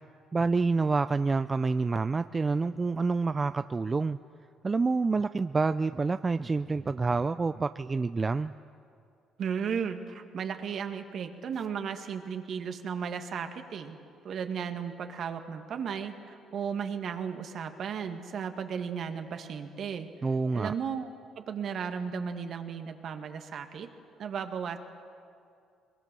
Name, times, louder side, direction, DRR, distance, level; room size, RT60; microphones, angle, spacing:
voice 1, 0.3-4.2 4.6-8.5 20.2-20.7, right 4 dB, 30° right, 12 dB, 0.4 m, -27 dB
voice 2, 9.4-14.0 14.2-20.1 20.5-21.1 21.4-23.9 24.2-24.8, right 7 dB, 60° right, 6 dB, 1.8 m, -35 dB
23.0 x 21.5 x 6.9 m, 2.5 s
supercardioid pair, 75°, 0 cm